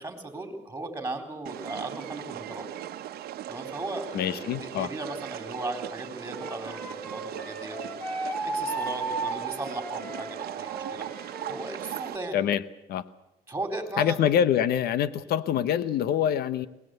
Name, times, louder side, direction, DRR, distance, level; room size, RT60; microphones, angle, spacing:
voice 1, 0.0-2.7 3.5-8.0 8.5-11.1 11.5-12.4 13.5-14.3, right 2 dB, 15° right, 6 dB, 4.1 m, -36 dB
sound 1, 1.5-12.2, right 12 dB, 65° right, 1.2 m, -39 dB
voice 2, 4.1-4.9 12.3-12.6 12.9-13.0 14.0-16.7, left 9 dB, 70° left, 15 dB, 1.0 m, -25 dB
Wind instrument woodwind instrument, 6.3-11.6, right 2 dB, 10° left, 4.9 m, -35 dB
22.0 x 19.0 x 8.0 m, 0.93 s
cardioid pair, 110°, 17 cm